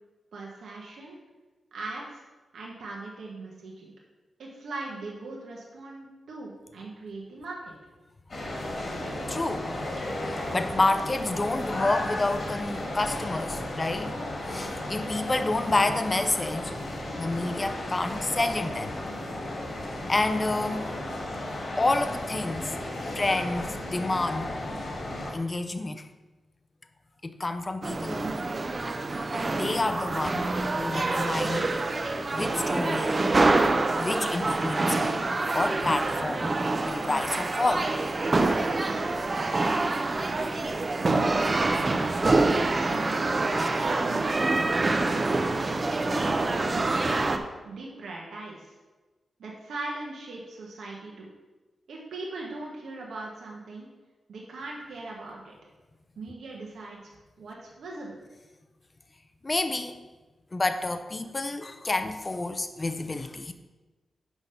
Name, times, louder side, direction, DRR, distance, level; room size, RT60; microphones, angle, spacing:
voice 1, 0.3-1.2 1.7-2.2 2.5-3.9 4.4-7.7 41.1-41.7 42.2-43.5 43.8-45.1 45.7-48.7 49.4-51.3 51.9-53.9 54.3-55.5 56.2-58.2, right 2 dB, 85° right, -3 dB, 1.2 m, -40 dB
sound 1, 8.3-25.3, left 1 dB, 50° left, 1.9 m, -34 dB
voice 2, 9.3-9.7 10.2-14.1 14.5-16.7 17.2-19.0 20.1-20.9 21.8-22.7 23.1-24.5 25.3-26.0 27.2-28.4 29.5-31.7 32.3-33.2 34.0-35.2 35.5-36.5 36.8-37.9 43.6-43.7 59.4-60.0 60.5-63.5, left 2 dB, 30° left, 9 dB, 0.6 m, -29 dB
sound 2, 27.8-47.4, right 2 dB, 35° right, 0.6 m, -26 dB
6.1 x 5.1 x 5.6 m, 1.2 s
cardioid pair, 85°, 0 cm